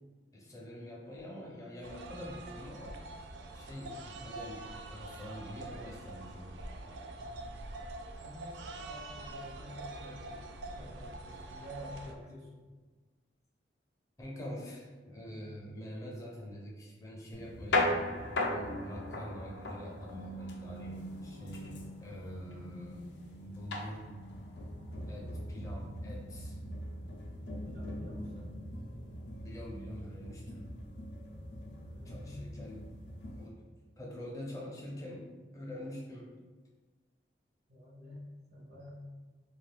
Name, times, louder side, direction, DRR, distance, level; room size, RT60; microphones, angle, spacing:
voice 1, 0.3-3.0 3.5-6.6 14.2-18.2 18.4-21.7 22.0-24.1 25.1-26.6 29.4-30.7 32.0-32.9 33.4-36.3, equal, 20° left, -3 dB, 0.5 m, -45 dB
sound 1, 1.8-12.1, right 2 dB, 85° right, 0.3 m, -45 dB
voice 2, 3.7-4.1 6.7-6.9 7.2-7.8 8.1-12.7 17.4-17.5 24.9-25.3 26.0-26.1 27.7-28.5 31.7-32.7 37.7-38.9, equal, 60° right, -3 dB, 0.7 m, -50 dB
sound 2, 17.3-33.5, left 1 dB, 75° left, 0.4 m, -39 dB
2.5 x 2.3 x 3.2 m, 1.3 s
head